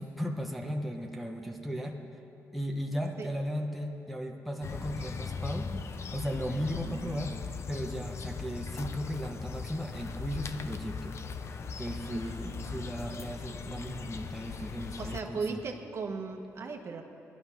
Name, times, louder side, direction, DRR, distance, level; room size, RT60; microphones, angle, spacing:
voice 1, 0.0-2.0 2.5-15.6, equal, ahead, 0 dB, 1.1 m, -36 dB
sound 1, 4.6-15.2, left 5 dB, 50° left, 0.7 m, -39 dB
voice 2, 6.7-7.4 12.1-12.2 15.0-17.0, right 4 dB, 50° right, 3 dB, 1.3 m, -37 dB
17.5 x 11.5 x 5.9 m, 2.7 s
cardioid pair, 110°, 6 cm